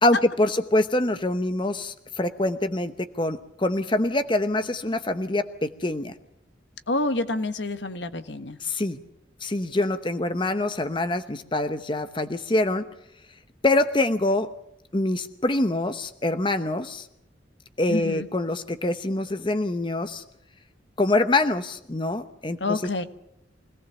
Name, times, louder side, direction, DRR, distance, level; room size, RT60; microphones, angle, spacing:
voice 1, 0.0-6.1 8.6-9.0 9.4-12.9 13.6-14.5 14.9-17.1 17.8-20.2 21.0-22.8, left 2 dB, 25° left, 9 dB, 0.9 m, -25 dB
voice 2, 6.9-8.6 17.9-18.3 22.6-23.0, left 2 dB, 70° left, 10 dB, 1.4 m, -28 dB
25.0 x 18.0 x 7.1 m, 0.80 s
head